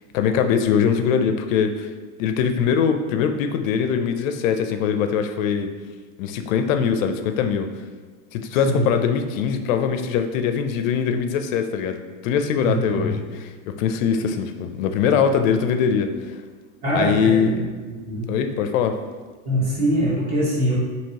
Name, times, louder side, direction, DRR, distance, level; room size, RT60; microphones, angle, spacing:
voice 1, 0.1-1.9 2.2-5.7 6.2-7.7 8.3-16.4 16.9-17.6 18.3-19.0, left 7 dB, 85° left, 7 dB, 0.5 m, -22 dB
voice 2, 12.6-13.2 16.8-17.6 17.9-18.3 19.4-20.7, right 1 dB, 25° right, -6 dB, 0.9 m, -23 dB
4.5 x 2.9 x 2.8 m, 1.4 s
supercardioid pair, 170°, 39 cm